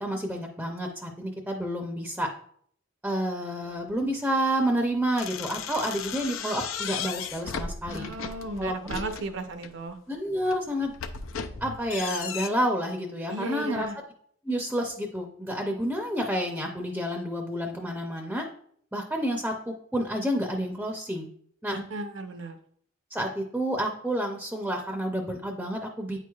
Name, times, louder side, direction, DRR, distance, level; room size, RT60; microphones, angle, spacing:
voice 1, 0.0-2.3 3.0-8.1 8.6-9.0 10.1-10.9 11.6-13.9 14.4-18.5 18.9-21.3 21.6-21.8 23.1-26.2, equal, 5° right, 2 dB, 0.5 m, -29 dB
sound 1, 5.2-9.8 10.3-12.5, left 6 dB, 85° left, 0.5 m, -36 dB
voice 2, 7.9-10.0 13.3-14.0 21.7-22.6, right 2 dB, 65° right, 8 dB, 0.7 m, -35 dB
8.8 x 4.6 x 2.3 m, 0.62 s
head